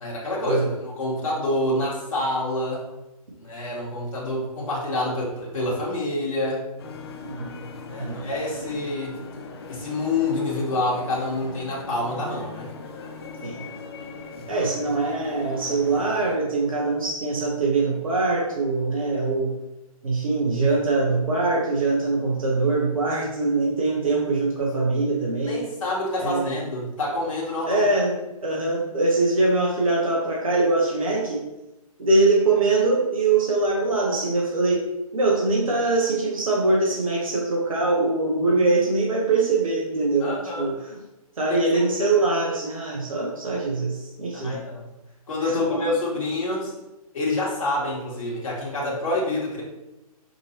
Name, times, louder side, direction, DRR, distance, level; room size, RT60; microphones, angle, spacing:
voice 1, 0.0-2.8 3.4-6.6 7.8-9.2 9.7-12.7 14.3-14.7 25.4-27.9 40.2-40.7 41.5-41.6 42.0-42.2 44.3-44.8 45.3-46.7 47.1-49.6, left 2 dB, 60° left, -4 dB, 1.4 m, -27 dB
sound 1, 6.8-16.4, left 4 dB, 45° left, 0.5 m, -39 dB
voice 2, 14.5-19.6 20.0-25.6 26.2-26.6 27.7-31.4 32.0-41.0 41.4-44.6 45.4-45.9, right 3 dB, 65° right, -2 dB, 0.9 m, -23 dB
5.2 x 2.8 x 2.9 m, 0.97 s
figure-of-eight pair, 130°, 19 cm